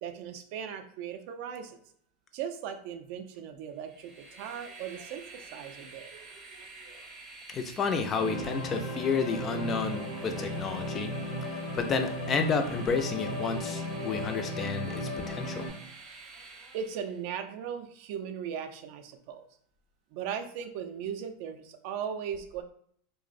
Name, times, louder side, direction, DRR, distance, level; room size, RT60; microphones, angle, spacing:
voice 1, 0.0-1.8 2.3-6.1 16.7-19.5 20.1-22.6, right 8 dB, 60° right, 7 dB, 0.3 m, -38 dB
Train, 3.7-17.2, right 3 dB, 30° right, 0.7 m, -49 dB
voice 2, 7.5-11.1 11.7-15.6, left 5 dB, 30° left, 6 dB, 0.3 m, -31 dB
sound 1, 8.1-15.7, left 1 dB, 70° left, 0.8 m, -36 dB
2.5 x 2.0 x 2.4 m, 0.63 s
supercardioid pair, 115°, 0 cm